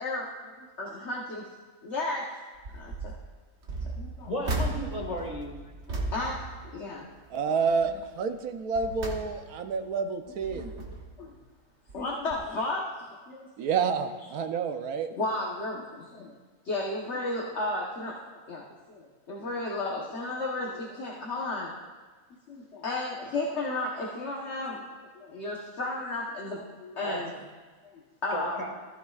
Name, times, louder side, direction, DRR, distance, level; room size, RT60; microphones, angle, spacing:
voice 1, 0.0-1.5 1.8-2.2 2.7-3.1 4.0-4.3 5.9-6.4 6.6-7.1 7.4-7.5 10.5-10.6 11.2-11.3 11.9-13.5 15.2-16.3 16.6-21.7 22.5-27.3 28.2-28.6, left 2 dB, 55° left, -3 dB, 1.4 m, -33 dB
sound 1, 2.6-3.2 3.6-7.3 7.7-8.0 8.5-9.8 10.3-11.2 11.9-12.1 12.3-12.4, right 2 dB, 50° right, 1.4 m, -36 dB
voice 2, 4.3-5.7 27.0-27.2 28.3-28.7, equal, 25° left, -1 dB, 1.8 m, -34 dB
voice 3, 7.3-10.7 13.6-15.1, right 5 dB, 85° right, 7 dB, 1.2 m, -29 dB
15.0 x 14.0 x 2.4 m, 1.4 s
omnidirectional pair, 1.5 m